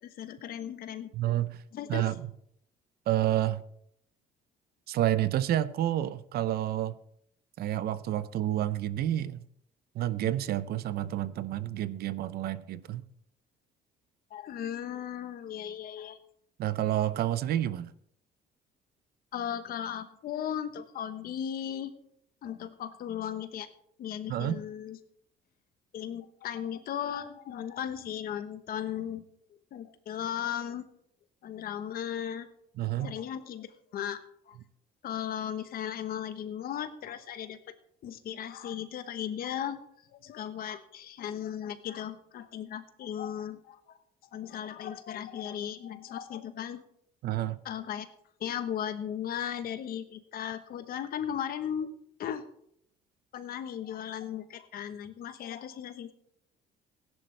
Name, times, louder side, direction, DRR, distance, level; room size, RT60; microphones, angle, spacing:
voice 1, 0.0-1.1 1.7-2.1 14.3-16.2 19.3-21.9 22.4-23.7 24.0-25.0 25.9-29.2 29.7-30.8 31.4-32.5 33.0-33.7 33.9-34.2 34.5-34.6 35.0-37.6 38.0-39.8 40.1-44.0 44.3-46.8 47.6-48.1 48.4-51.9 52.2-52.4 53.3-56.1, left 9 dB, 60° left, 1.1 m, -36 dB
voice 2, 1.1-1.6 1.9-2.2 3.1-3.6 4.9-6.9 7.6-9.4 9.9-13.0 16.6-17.9 24.3-24.6 32.8-33.1 47.2-47.6, right 12 dB, 65° right, 0.7 m, -29 dB
16.0 x 10.5 x 3.4 m
cardioid pair, 110°, 17 cm